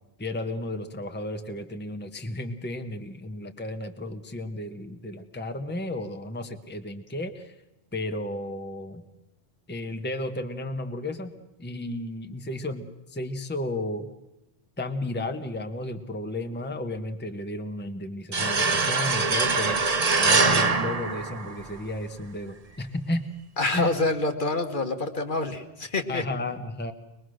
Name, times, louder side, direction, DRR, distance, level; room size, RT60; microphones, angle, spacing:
voice 1, 0.2-7.5 7.9-9.0 9.7-11.3 11.6-14.1 14.8-19.8 20.2-23.2 23.7-23.9 26.1-26.9, left 1 dB, 10° left, 7 dB, 1.0 m, -33 dB
sound 1, 18.3-21.9, right 4 dB, 35° right, 1.1 m, -23 dB
voice 2, 23.6-26.2, left 2 dB, 50° left, 6 dB, 1.6 m, -27 dB
23.5 x 21.0 x 6.4 m, 0.93 s
omnidirectional pair, 1.1 m